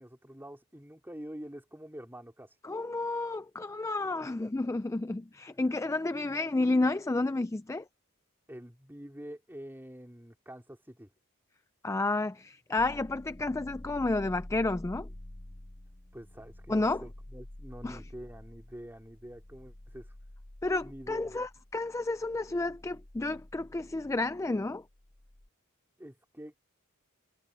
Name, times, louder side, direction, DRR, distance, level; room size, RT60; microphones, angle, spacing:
voice 1, 0.0-2.5 4.1-4.5 8.5-11.1 16.1-20.1 20.8-21.4 26.0-26.5, equal, 10° right, 3.8 m, -46 dB
voice 2, 2.6-7.8 11.8-15.1 16.7-17.0 17.8-18.0 20.6-24.8, left 2 dB, 15° left, 0.4 m, -31 dB
sound 1, 12.8-25.5, left 1 dB, 30° left, 1.0 m, -49 dB
head